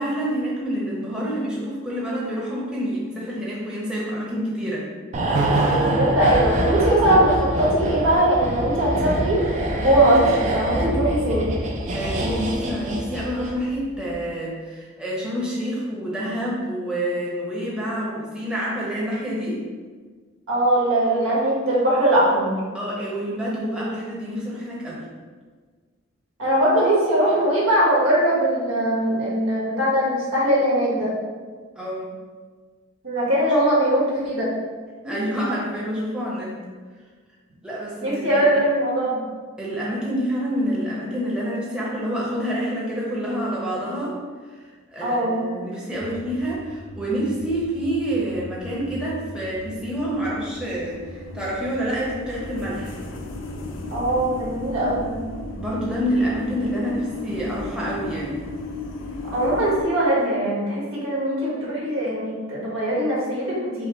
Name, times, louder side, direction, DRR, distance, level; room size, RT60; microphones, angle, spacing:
voice 1, 0.0-4.9 11.9-19.6 22.7-25.1 31.8-32.2 35.0-36.6 37.6-38.5 39.6-44.2 44.6-53.0 55.6-58.4, equal, 5° right, -7 dB, 0.8 m, -27 dB
sound 1, 5.1-13.7 13.9-14.1, right 1 dB, 35° right, 0.5 m, -24 dB
voice 2, 5.8-9.5 9.8-11.5 20.5-22.6 26.4-31.1 33.0-34.5 35.0-35.1 38.0-39.2 45.0-45.5 53.9-55.2 59.3-63.9, right 1 dB, 85° right, -6 dB, 1.5 m, -21 dB
sound 2, 45.9-59.8, left 2 dB, 65° left, 0.5 m, -36 dB
5.6 x 2.1 x 3.9 m, 1.5 s
head